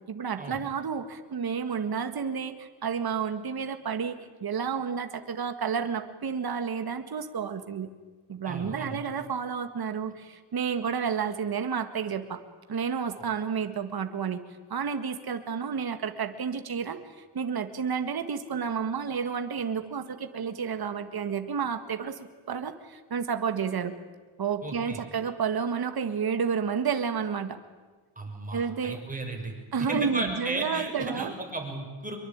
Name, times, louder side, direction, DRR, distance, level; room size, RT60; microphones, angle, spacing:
voice 1, 0.0-7.9 8.3-12.4 12.7-14.4 14.7-17.0 17.3-22.2 22.5-23.9 24.4-27.6 28.5-29.0 29.7-31.3, right 6 dB, 45° right, 8 dB, 1.9 m, -31 dB
voice 2, 8.4-9.0 24.6-25.0 28.2-29.5 29.8-32.2, right 2 dB, 15° right, 2 dB, 6.4 m, -34 dB
24.5 x 23.0 x 8.8 m, 1.3 s
cardioid pair, 120°, 49 cm